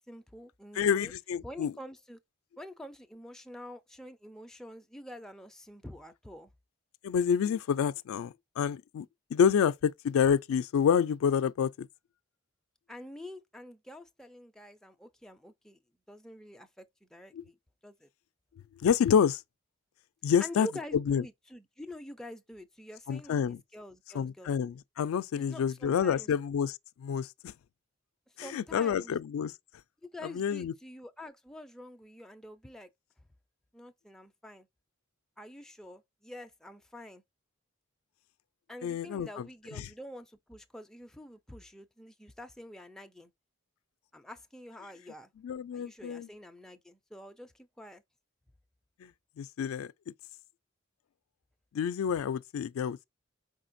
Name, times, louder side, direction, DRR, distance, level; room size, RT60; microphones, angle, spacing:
voice 1, 0.0-1.1 1.4-2.2 2.6-6.5 12.9-15.8 16.1-17.6 17.8-18.1 20.4-24.5 25.4-26.3 28.4-29.1 30.0-32.9 33.7-34.7 35.4-37.2 38.7-43.3 44.1-45.3 45.7-48.0, left 1 dB, 5° left, 0.4 m, -47 dB
voice 2, 0.7-1.7 7.0-9.1 9.3-11.9 17.3-17.4 18.8-19.4 20.2-20.7 20.9-21.2 23.1-23.6 24.1-27.5 28.4-29.5 30.3-30.7 38.8-39.5 39.8-39.9 45.4-46.3 49.0-49.1 49.4-49.9 51.7-53.0, left 7 dB, 80° left, 0.3 m, -28 dB
4.9 x 3.7 x 2.6 m
head